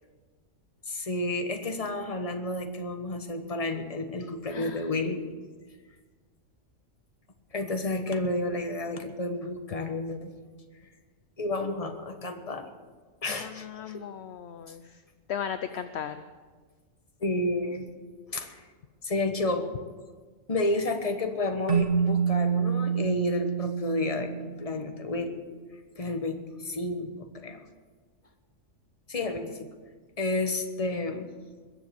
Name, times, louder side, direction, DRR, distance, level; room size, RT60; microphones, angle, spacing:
voice 1, 0.9-5.2 7.5-10.3 11.4-12.7 13.2-14.0 17.2-17.9 18.3-18.6 19.0-19.7 20.5-25.4 26.0-27.6 29.1-29.7 30.2-31.3, left 2 dB, 30° left, 6 dB, 1.3 m, -31 dB
voice 2, 4.5-4.8 13.4-15.0 15.3-16.2, left 8 dB, 60° left, 10 dB, 0.8 m, -36 dB
Keyboard (musical), 21.7-24.9, right 7 dB, 45° right, 1.6 m, -27 dB
21.0 x 7.2 x 8.0 m, 1.5 s
omnidirectional pair, 1.3 m